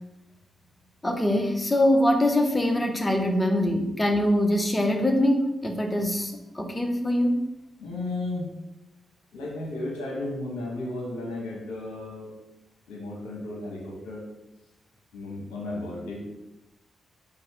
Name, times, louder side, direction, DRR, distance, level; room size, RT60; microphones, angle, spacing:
voice 1, 1.0-7.4, left 1 dB, 20° left, 4 dB, 0.9 m, -23 dB
voice 2, 7.8-8.5 9.3-12.3 12.9-14.2 15.1-16.2, left 2 dB, 80° left, -2 dB, 1.1 m, -34 dB
4.3 x 3.5 x 3.4 m, 0.95 s
hypercardioid pair, 40°, 0 cm